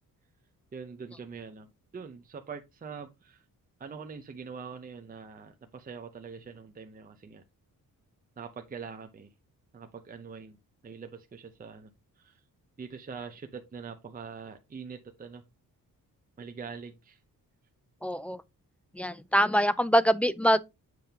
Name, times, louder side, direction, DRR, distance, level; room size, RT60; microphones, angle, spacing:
voice 1, 0.7-3.4 3.8-7.4 8.4-9.3 9.7-10.6 10.8-11.9 12.2-12.4 12.8-15.4 16.4-17.2, right 5 dB, 25° right, 0.7 m, -43 dB
voice 2, 18.0-18.4 18.9-20.6, equal, 5° left, 0.3 m, -24 dB
7.7 x 5.2 x 2.9 m
wide cardioid pair, 150°, 35 cm